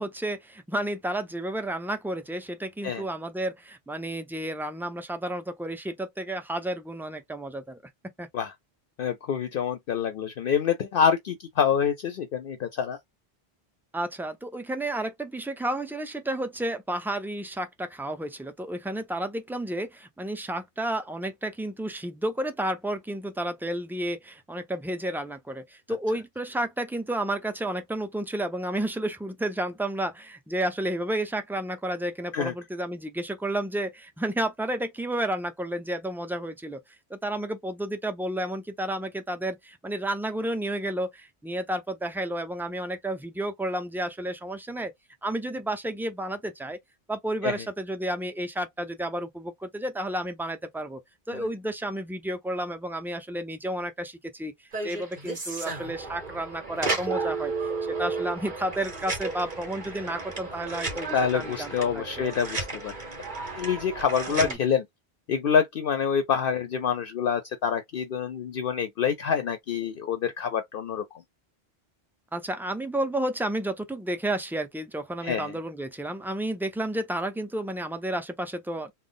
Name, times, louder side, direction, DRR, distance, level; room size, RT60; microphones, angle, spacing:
voice 1, 0.0-7.8 8.2-8.3 13.9-36.8 37.1-44.9 45.2-46.8 47.1-51.0 51.3-54.5 54.8-62.0 64.4-64.6 72.3-78.9, right 1 dB, 5° right, 0.3 m, -31 dB
voice 2, 9.0-13.0 32.3-32.5 47.4-47.5 51.3-51.4 61.1-62.9 63.6-64.9 65.3-71.0 75.2-75.5, left 7 dB, 60° left, 0.7 m, -26 dB
sound 1, 54.7-64.5, right 3 dB, 45° right, 1.4 m, -33 dB
3.4 x 2.0 x 3.8 m
omnidirectional pair, 1.1 m